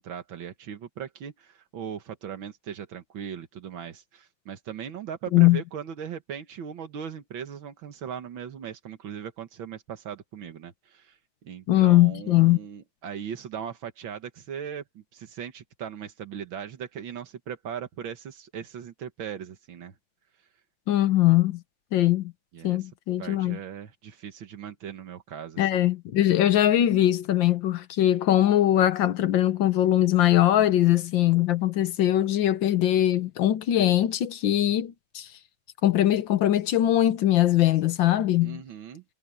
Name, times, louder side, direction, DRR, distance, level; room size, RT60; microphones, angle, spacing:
voice 1, 0.0-19.9 22.5-22.9 23.2-25.9 38.4-39.0, right 8 dB, 90° right, 2.2 m, -39 dB
voice 2, 11.7-12.6 20.9-21.6 21.9-22.3 22.6-23.6 25.6-35.3 35.8-38.6, left 13 dB, 75° left, 1.6 m, -21 dB
omnidirectional pair, 2.1 m